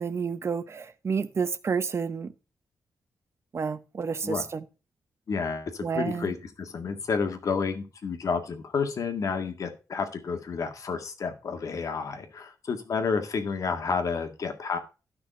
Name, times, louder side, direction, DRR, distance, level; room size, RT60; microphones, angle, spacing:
voice 1, 0.0-2.3 3.5-4.6 5.8-6.3, right 6 dB, 45° right, 0.9 m, -30 dB
voice 2, 5.3-14.8, left 5 dB, 55° left, 1.8 m, -30 dB
13.0 x 6.0 x 4.3 m
wide cardioid pair, 135°, 7 cm